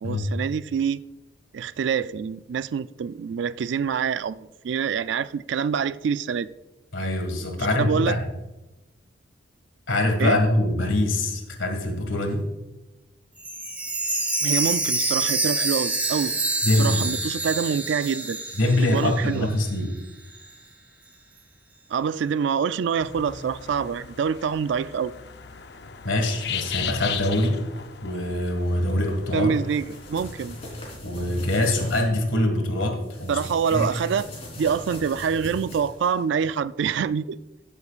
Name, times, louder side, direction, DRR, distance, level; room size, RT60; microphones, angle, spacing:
voice 1, 0.0-1.0 1.5-6.5 7.8-8.2 10.2-10.4 14.4-16.4 16.8-18.4 18.8-19.5 21.9-25.1 29.3-30.6 33.3-34.3 34.6-37.4, right 7 dB, 70° right, 0.3 m, -26 dB
voice 2, 6.9-8.2 9.9-12.5 16.6-17.0 18.6-19.9 26.0-27.6 28.0-29.5 31.0-33.4 33.7-33.9, left 1 dB, 85° left, 1.9 m, -24 dB
Chime, 13.4-19.3 19.6-19.7 20.3-20.4, right 2 dB, 10° right, 1.1 m, -27 dB
sound 1, 23.0-31.0, left 8 dB, 60° left, 0.6 m, -37 dB
sound 2, 29.5-32.0 33.0-36.2, left 1 dB, 30° left, 3.7 m, -40 dB
15.5 x 8.3 x 2.4 m
head